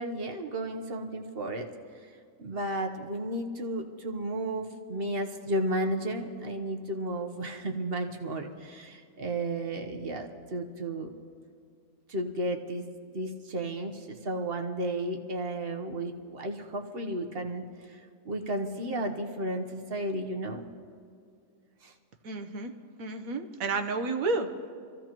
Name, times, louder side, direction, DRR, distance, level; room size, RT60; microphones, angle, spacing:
voice 1, 0.0-1.7 2.0-2.1 2.4-11.1 12.1-12.8 13.1-18.0 18.2-20.6 21.8-21.9, right 1 dB, 45° right, 4 dB, 1.2 m, -33 dB
voice 2, 22.2-22.7 23.0-24.7, right 3 dB, 70° right, 6 dB, 1.3 m, -31 dB
25.5 x 15.0 x 3.0 m, 2.3 s
omnidirectional pair, 1.6 m